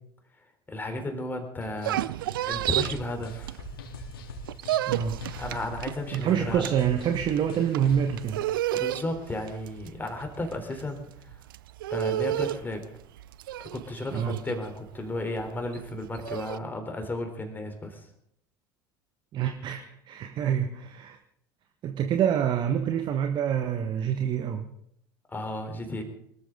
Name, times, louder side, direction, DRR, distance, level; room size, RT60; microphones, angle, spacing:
voice 1, 0.7-2.1 2.5-3.6 5.4-6.6 8.7-11.1 11.9-12.8 13.6-18.1 25.3-26.0, left 1 dB, 15° left, 5 dB, 4.0 m, -34 dB
sound 1, 1.6-4.0 4.3-16.6, right 13 dB, 65° right, 0.5 m, -32 dB
sound 2, 2.5-8.2, left 2 dB, 75° left, 3.6 m, -42 dB
voice 2, 4.9-5.2 6.1-8.4 14.1-14.4 19.3-21.2 21.8-24.7, right 9 dB, 40° right, 6 dB, 1.4 m, -27 dB
24.5 x 13.5 x 4.0 m, 0.73 s
figure-of-eight pair, 75°, 12 cm